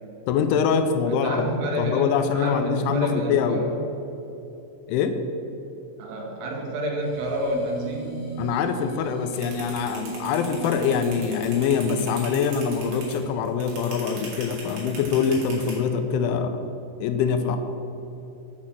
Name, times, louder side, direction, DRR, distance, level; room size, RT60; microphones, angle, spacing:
voice 1, 0.3-1.5 1.8-3.6 4.9-5.1 8.4-16.6 17.0-17.6, left 6 dB, 85° left, 8 dB, 2.9 m, -24 dB
voice 2, 1.1-3.8 6.0-8.3, right 1 dB, 80° right, 0 dB, 3.9 m, -29 dB
sound 1, 7.0-13.5, right 5 dB, 55° left, 3.5 m, -39 dB
sound 2, 9.3-15.7, right 4 dB, 65° right, 4.2 m, -39 dB
8.6 x 6.1 x 7.3 m, 3.0 s
omnidirectional pair, 5.6 m